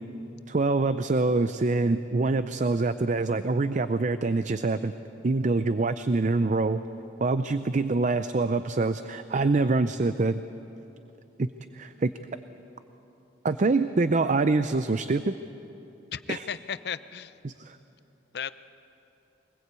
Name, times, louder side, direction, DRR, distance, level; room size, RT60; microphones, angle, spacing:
voice 1, 0.5-4.9 5.2-6.8 7.2-10.4 11.4-11.5 11.7-12.1 13.4-15.4 16.3-16.4 17.4-17.8, right 3 dB, 45° right, 11 dB, 0.5 m, -25 dB
voice 2, 16.1-17.3 18.3-18.5, left 7 dB, 65° left, 14 dB, 0.6 m, -34 dB
23.0 x 20.5 x 8.2 m, 2.9 s
head